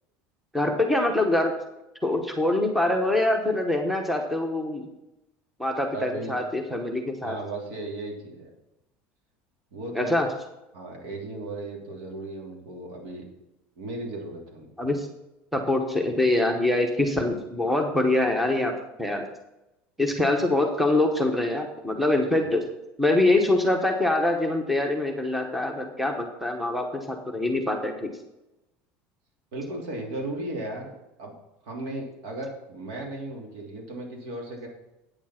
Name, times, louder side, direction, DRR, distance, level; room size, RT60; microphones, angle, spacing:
voice 1, 0.5-1.5 2.0-4.9 5.6-7.3 9.9-10.3 14.8-15.1 15.5-18.7 19.0-19.2 20.0-22.6 23.0-28.1, left 2 dB, 5° right, 4 dB, 1.0 m, -24 dB
voice 2, 5.9-6.4 7.2-8.5 9.7-10.2 10.7-13.2 13.8-14.9 22.3-22.5 29.5-30.9 31.2-31.3 31.6-34.7, right 2 dB, 75° right, 0 dB, 3.2 m, -36 dB
8.8 x 7.2 x 5.8 m, 0.94 s
cardioid pair, 160°, 5 cm